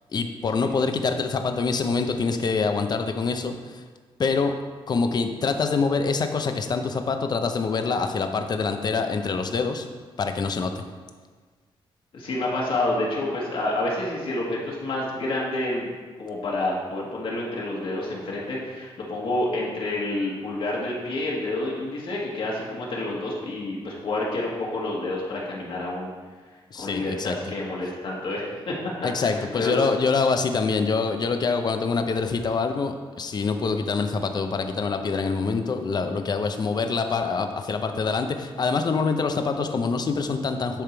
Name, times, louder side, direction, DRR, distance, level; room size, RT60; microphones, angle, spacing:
voice 1, 0.1-3.8 4.2-4.5 4.9-9.9 10.2-10.8 26.7-27.4 29.0-40.8, left 4 dB, 45° left, 6 dB, 0.7 m, -25 dB
voice 2, 12.1-15.9 16.2-26.1 26.7-28.7 29.2-29.9, left 2 dB, 65° left, -4 dB, 1.6 m, -28 dB
10.0 x 3.6 x 4.6 m, 1.5 s
cardioid pair, 100°, 10 cm